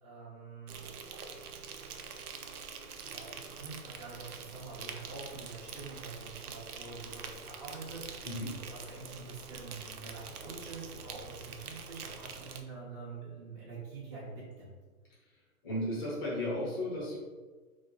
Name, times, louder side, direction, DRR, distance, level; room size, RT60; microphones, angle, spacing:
voice 1, 0.0-0.9 2.9-14.8, right 4 dB, 25° right, -7 dB, 1.0 m, -46 dB
Insect, 0.7-12.6, right 6 dB, 85° right, 0.6 m, -45 dB
voice 2, 15.6-17.2, left 1 dB, 15° left, -7 dB, 0.7 m, -34 dB
3.0 x 2.1 x 3.8 m, 1.3 s
hypercardioid pair, 150°, 44 cm